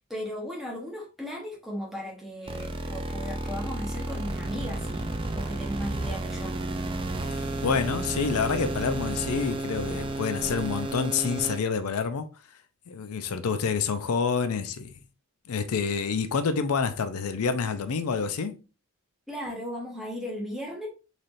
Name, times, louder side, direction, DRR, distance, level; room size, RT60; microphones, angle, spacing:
voice 1, 0.1-6.6 19.3-20.9, equal, ahead, 1.0 m, -36 dB
sound 1, 2.5-11.6, right 2 dB, 25° right, 0.4 m, -32 dB
voice 2, 7.3-12.3 12.9-14.9 15.5-18.6, left 5 dB, 90° left, 0.5 m, -28 dB
4.1 x 3.3 x 2.6 m
head